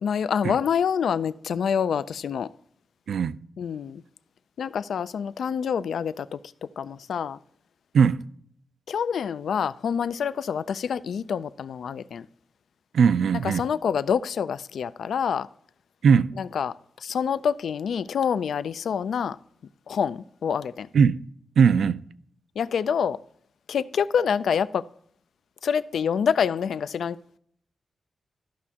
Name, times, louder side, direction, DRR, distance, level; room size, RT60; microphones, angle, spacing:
voice 1, 0.0-2.5 3.6-4.0 4.6-6.4 6.8-7.4 8.9-12.3 13.4-15.5 16.4-16.7 17.0-19.4 19.9-20.9 22.6-23.2 23.7-24.8 25.6-27.2, left 7 dB, 80° left, 0.3 m, -26 dB
voice 2, 3.1-3.4 7.9-8.2 12.9-13.7 16.0-16.4 20.9-21.3 21.6-22.0, right 6 dB, 80° right, 0.4 m, -19 dB
14.0 x 6.0 x 2.8 m
wide cardioid pair, 150°, 0 cm